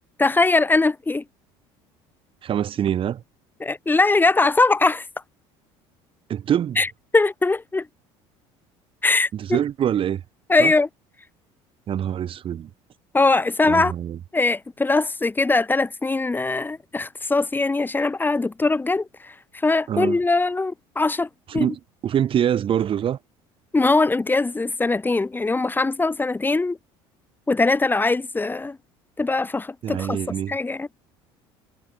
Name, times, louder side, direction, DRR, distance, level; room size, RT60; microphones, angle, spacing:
voice 1, 0.2-1.2 3.6-5.1 6.8-6.9 7.1-7.9 9.0-9.6 10.5-10.9 13.1-13.9 14.3-19.3 19.6-21.3 21.5-21.7 23.7-26.8 27.5-28.8 29.2-30.2 30.5-30.9, left 3 dB, 15° left, 5.5 m, -21 dB
voice 2, 2.4-3.2 6.3-6.8 9.3-10.2 10.6-10.7 11.9-12.7 13.7-14.2 19.9-20.2 21.5-23.2 29.8-30.6, right 10 dB, 45° right, 5.0 m, -24 dB
supercardioid pair, 100°, 12 cm